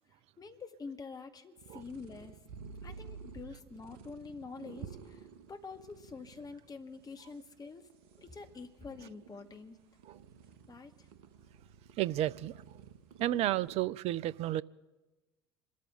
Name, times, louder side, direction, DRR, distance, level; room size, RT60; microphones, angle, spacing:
voice 1, 0.4-2.4 2.8-7.9 8.2-9.8 10.7-11.1, left 4 dB, 30° left, 2.2 m, -47 dB
sound 1, 1.6-13.8, right 6 dB, 70° right, 1.4 m, -52 dB
voice 2, 12.0-12.5 13.2-14.6, right 14 dB, 55° right, 0.6 m, -31 dB
27.0 x 13.5 x 3.9 m
hypercardioid pair, 65°, 13 cm